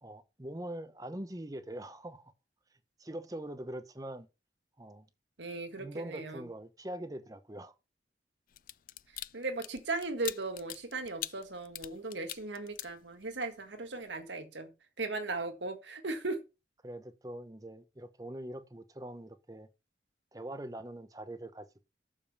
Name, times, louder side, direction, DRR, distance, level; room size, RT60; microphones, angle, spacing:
voice 1, 0.0-2.3 3.0-4.3 4.8-5.1 5.8-7.7 16.8-19.7 20.3-21.8, right 1 dB, 20° right, 0.8 m, -43 dB
voice 2, 5.4-6.5 9.3-14.7 15.0-16.4, right 3 dB, 90° right, 1.7 m, -37 dB
sound 1, 8.5-13.5 13.9-14.1, left 14 dB, 50° left, 0.4 m, -43 dB
6.9 x 5.3 x 6.5 m
head